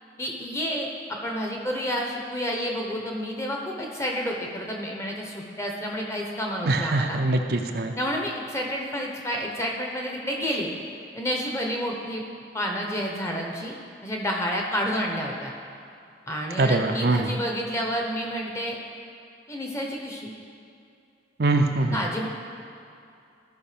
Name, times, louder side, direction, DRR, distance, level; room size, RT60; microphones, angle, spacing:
voice 1, 0.2-0.9 1.2-7.2 8.0-10.7 11.1-12.2 12.5-13.7 14.0-15.5 16.3-18.8 19.5-20.3 21.9-22.3, equal, 15° left, 0 dB, 1.0 m, -29 dB
voice 2, 6.7-7.9 16.6-17.3 21.4-22.0, right 2 dB, 55° right, 4 dB, 0.6 m, -23 dB
14.0 x 5.2 x 5.1 m, 2.6 s
head